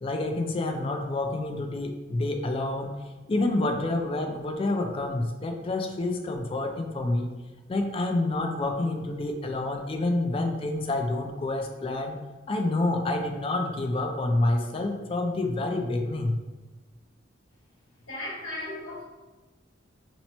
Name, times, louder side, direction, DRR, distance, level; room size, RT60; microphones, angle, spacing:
voice 1, 0.0-3.0 3.3-7.3 7.7-12.2 12.5-16.4, left 2 dB, 30° left, 4 dB, 0.3 m, -28 dB
voice 2, 18.1-19.0, left 1 dB, 90° left, -6 dB, 1.3 m, -36 dB
2.9 x 2.1 x 4.0 m, 1.2 s
head